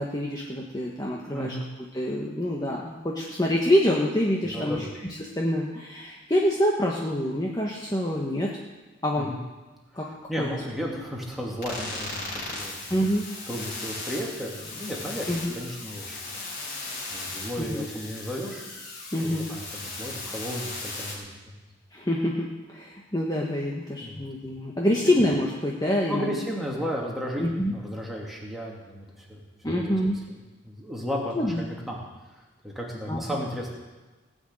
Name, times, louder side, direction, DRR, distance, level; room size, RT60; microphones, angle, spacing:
voice 1, 0.0-1.5 1.9-4.9 5.2-8.5 9.0-9.3 9.9-10.1 10.4-10.6 10.9-11.0 12.9-13.3 15.3-15.5 17.6-17.9 19.1-19.5 21.9-26.4 27.4-27.7 29.6-30.2 31.3-31.6 33.1-33.4, left 1 dB, 20° left, -2 dB, 1.3 m, -26 dB
voice 2, 1.3-1.6 4.5-4.9 9.2-9.4 10.0-12.7 13.5-16.4 17.1-18.6 19.2-21.6 24.0-24.3 25.0-25.1 26.1-30.0 30.6-32.0 32.6-33.7, equal, ahead, -3 dB, 2.5 m, -34 dB
sound 1, 11.6-21.2, left 3 dB, 45° left, 4.7 m, -37 dB
17.5 x 6.4 x 9.0 m, 1.2 s
head